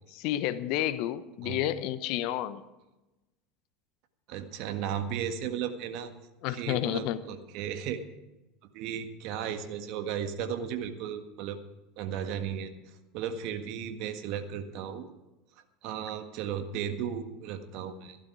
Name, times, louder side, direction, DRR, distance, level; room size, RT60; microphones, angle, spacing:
voice 1, 0.1-2.6 6.4-7.2, left 13 dB, 60° left, 14 dB, 0.9 m, -30 dB
voice 2, 4.3-6.1 6.5-8.0 8.7-11.6 12.0-12.7 13.1-15.1 15.8-18.2, right 8 dB, 55° right, 8 dB, 1.6 m, -35 dB
16.0 x 12.0 x 4.8 m, 1.0 s
hypercardioid pair, 75°, 0 cm